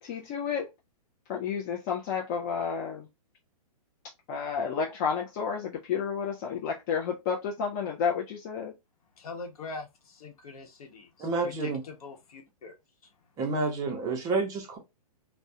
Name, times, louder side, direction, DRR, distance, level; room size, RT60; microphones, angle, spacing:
voice 1, 0.0-0.7 1.3-3.1 4.3-8.7, left 6 dB, 30° left, 0.3 m, -31 dB
voice 2, 9.2-12.7 13.0-13.1, left 3 dB, 70° left, 0.8 m, -43 dB
voice 3, 11.2-11.8 13.4-14.8, right 3 dB, 20° right, 0.6 m, -29 dB
2.3 x 2.0 x 2.6 m
hypercardioid pair, 140°, 20 cm